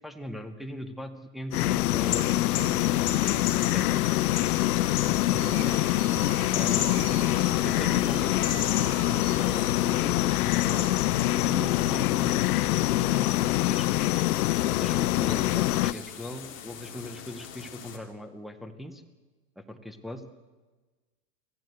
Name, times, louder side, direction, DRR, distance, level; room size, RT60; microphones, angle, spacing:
voice 1, 0.0-4.1 5.1-5.9 6.5-9.0 9.4-10.9 11.3-12.4 14.7-19.0 19.6-20.2, left 1 dB, ahead, 5 dB, 0.6 m, -40 dB
sound 1, 1.5-15.9, left 16 dB, 65° left, 0.7 m, -25 dB
sound 2, 1.8-18.0, left 8 dB, 25° left, 2.5 m, -38 dB
sound 3, 4.9-10.0, right 7 dB, 45° right, 3.1 m, -43 dB
25.0 x 15.5 x 7.8 m, 1.3 s
supercardioid pair, 160°, 48 cm